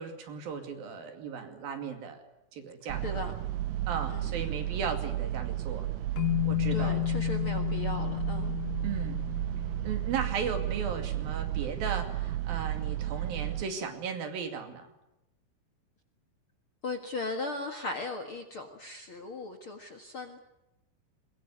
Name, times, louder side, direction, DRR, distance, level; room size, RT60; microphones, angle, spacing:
voice 1, 0.0-2.2 2.5-3.3 3.9-5.9 6.4-7.1 8.8-9.2 9.8-14.9, right 6 dB, 65° right, 6 dB, 4.2 m, -36 dB
sound 1, 2.9-13.6, right 14 dB, 90° right, 3.2 m, -33 dB
voice 2, 3.0-3.3 4.1-4.3 6.7-8.6 16.8-20.4, left 3 dB, 50° left, 5 dB, 1.8 m, -37 dB
sound 2, 6.2-10.5, left 21 dB, 65° left, 2.6 m, -32 dB
22.0 x 21.5 x 9.7 m, 0.91 s
omnidirectional pair, 4.5 m